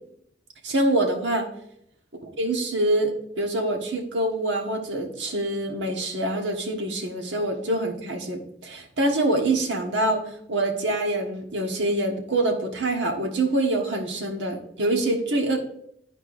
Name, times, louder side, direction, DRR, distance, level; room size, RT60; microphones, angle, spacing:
voice 1, 0.6-1.5 2.4-15.6, right 1 dB, 80° right, 3 dB, 1.3 m, -25 dB
12.5 x 4.4 x 2.5 m, 0.71 s
head